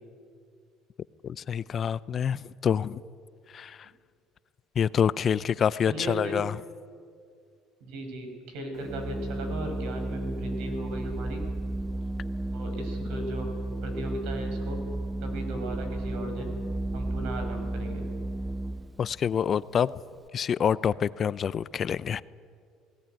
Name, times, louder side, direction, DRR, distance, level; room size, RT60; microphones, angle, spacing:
voice 1, 1.2-3.0 3.5-3.8 4.8-6.5 19.0-19.9 20.3-22.2, left 8 dB, 40° left, 18 dB, 0.5 m, -27 dB
voice 2, 5.9-6.4 7.8-11.4 12.5-13.5 13.8-14.8 15.2-16.6 16.9-18.1, right 1 dB, 75° right, 5 dB, 5.4 m, -36 dB
Organ, 8.8-19.1, right 2 dB, 15° right, 0.6 m, -33 dB
18.5 x 17.5 x 9.2 m, 2.2 s
cardioid pair, 110°, 0 cm